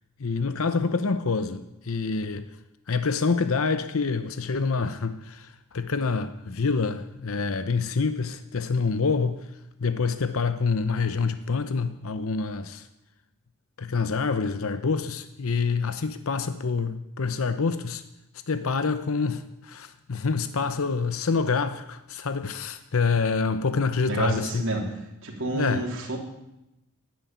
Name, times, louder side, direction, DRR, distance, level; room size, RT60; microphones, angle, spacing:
voice 1, 0.2-2.5 2.9-9.5 9.8-12.9 13.8-18.0 18.5-24.6 25.5-25.9, left 4 dB, 65° left, 11 dB, 0.7 m, -26 dB
voice 2, 24.1-24.9 25.2-26.2, right 2 dB, 60° right, 0 dB, 3.5 m, -29 dB
12.0 x 10.5 x 9.3 m, 0.90 s
head